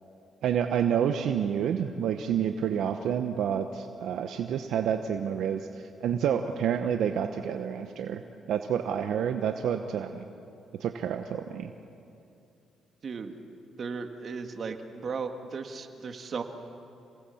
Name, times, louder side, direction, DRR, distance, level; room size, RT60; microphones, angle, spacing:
voice 1, 0.4-5.7 6.0-8.2 8.5-10.3 10.8-11.7, right 8 dB, 75° right, 6 dB, 0.9 m, -28 dB
voice 2, 13.0-13.3 13.8-14.8 15.0-16.4, right 5 dB, 50° right, 5 dB, 1.9 m, -35 dB
27.0 x 18.5 x 7.1 m, 2.7 s
cardioid pair, 90°, 0 cm